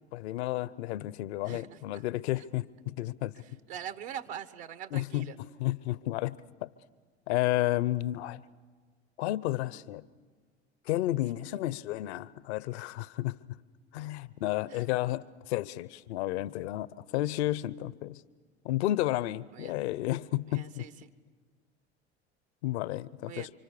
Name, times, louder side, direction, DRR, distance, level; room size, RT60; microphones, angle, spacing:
voice 1, 0.1-3.4 4.9-6.7 7.3-8.4 9.2-10.1 10.9-13.4 13.9-18.2 18.6-20.9 22.6-23.5, left 15 dB, 70° left, 0.7 m, -32 dB
voice 2, 1.4-2.0 3.7-5.4 14.7-14.8 19.5-19.8 20.5-21.1 23.3-23.5, right 9 dB, 65° right, 1.5 m, -43 dB
29.0 x 25.0 x 6.8 m
hypercardioid pair, 70°, 34 cm